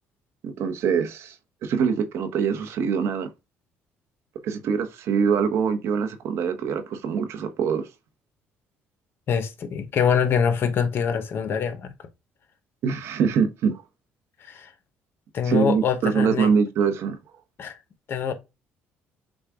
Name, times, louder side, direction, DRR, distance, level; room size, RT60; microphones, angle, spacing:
voice 1, 0.4-1.4 1.6-3.3 4.4-7.9 12.8-13.8 15.5-17.2, right 6 dB, 70° right, 0.9 m, -24 dB
voice 2, 9.3-11.9 14.4-14.7 15.3-16.5 17.6-17.8 18.1-18.3, left 7 dB, 50° left, 0.9 m, -24 dB
6.2 x 2.3 x 3.5 m
cardioid pair, 95°, 5 cm